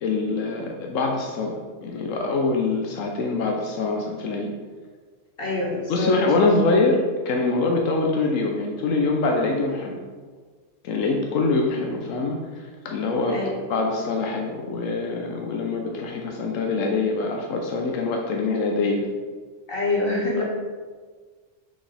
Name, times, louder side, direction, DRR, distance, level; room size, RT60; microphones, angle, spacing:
voice 1, 0.0-4.5 5.9-10.0 10.8-13.4 13.7-19.1 20.4-20.5, left 3 dB, 85° left, 1 dB, 1.1 m, -24 dB
voice 2, 5.4-6.1 13.3-13.5 19.7-20.4, left 2 dB, 45° left, -5 dB, 1.9 m, -25 dB
6.0 x 5.3 x 3.4 m, 1.5 s
omnidirectional pair, 1.3 m